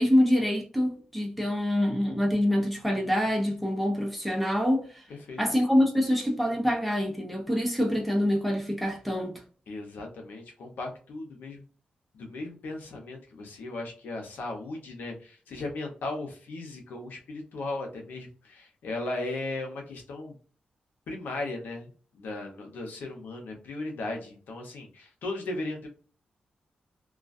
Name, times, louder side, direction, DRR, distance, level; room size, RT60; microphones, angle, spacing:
voice 1, 0.0-5.0 5.4-9.4, equal, ahead, 0.7 m, -25 dB
voice 2, 5.1-5.4 9.7-11.6 12.1-20.4 21.1-25.9, left 2 dB, 90° left, 0.7 m, -37 dB
2.3 x 2.3 x 2.4 m
cardioid pair, 95°, 3 cm